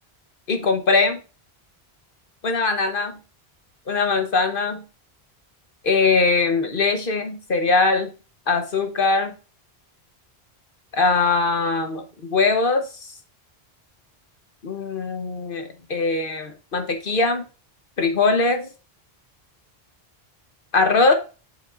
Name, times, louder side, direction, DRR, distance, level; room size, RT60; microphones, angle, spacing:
voice 1, 0.5-1.2 2.4-3.1 3.9-4.8 5.8-8.1 8.5-9.3 10.9-12.9 14.6-17.4 18.0-18.7 20.7-21.1, left 3 dB, 60° left, 6 dB, 1.2 m, -21 dB
8.7 x 6.9 x 2.5 m, 0.32 s
omnidirectional pair, 1.0 m